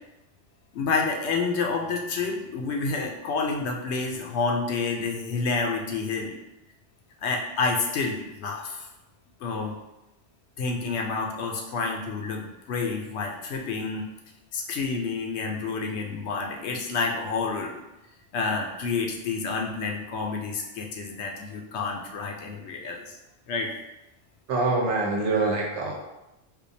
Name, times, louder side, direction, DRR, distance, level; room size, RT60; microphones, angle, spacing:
voice 1, 0.7-6.4 7.2-8.9 9.4-9.7 10.6-14.1 14.5-17.8 18.3-23.2 23.5-23.7, left 4 dB, 70° left, 1 dB, 0.9 m, -29 dB
voice 2, 24.5-25.9, right 3 dB, 75° right, -1 dB, 1.0 m, -25 dB
4.4 x 2.4 x 2.7 m, 0.95 s
omnidirectional pair, 1.2 m